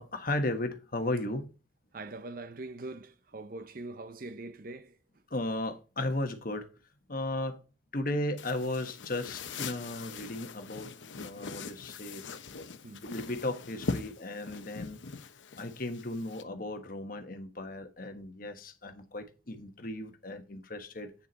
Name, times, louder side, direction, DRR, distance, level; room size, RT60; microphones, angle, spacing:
voice 1, 0.0-1.5 5.3-6.7 7.1-7.6 7.9-10.9 11.2-12.2 12.9-15.0 15.6-21.3, left 1 dB, 50° left, 1.3 m, -35 dB
voice 2, 1.9-5.0 12.8-13.1, right 2 dB, 50° right, 0.7 m, -42 dB
sound 1, 8.4-16.4, left 4 dB, 90° left, 0.9 m, -41 dB
8.5 x 7.3 x 4.1 m
head